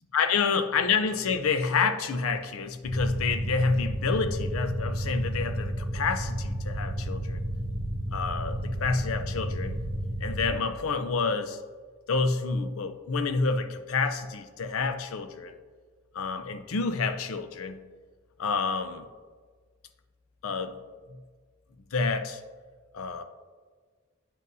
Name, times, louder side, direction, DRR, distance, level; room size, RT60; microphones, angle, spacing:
voice 1, 0.1-7.4 8.1-9.7 10.2-11.6 12.1-15.6 16.1-17.8 18.4-19.0 20.4-20.7 21.9-22.4 22.9-23.2, left 4 dB, 85° left, 9 dB, 0.5 m, -28 dB
sound 1, 2.8-10.5, equal, 40° right, 1.7 m, -32 dB
9.2 x 5.4 x 2.6 m, 1.5 s
head